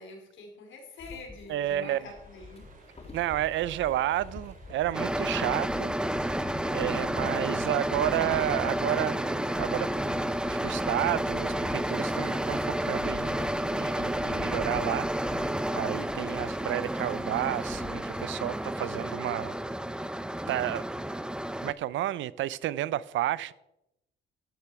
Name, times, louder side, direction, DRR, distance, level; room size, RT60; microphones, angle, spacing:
voice 1, 0.0-2.7, left 3 dB, 75° left, 4.0 m, -46 dB
sound 1, 1.0-18.3, left 3 dB, 30° left, 2.1 m, -45 dB
voice 2, 1.5-2.0 3.1-6.3 6.7-13.5 13.8-15.4 15.7-19.6 20.1-20.2 20.5-20.8 21.6-23.5, right 13 dB, 75° right, 0.5 m, -31 dB
sound 2, 1.9-14.3, right 3 dB, 40° right, 2.9 m, -56 dB
sound 3, 4.9-21.7, right 1 dB, 5° right, 0.5 m, -31 dB
12.5 x 8.9 x 4.7 m
cardioid pair, 90°, 20 cm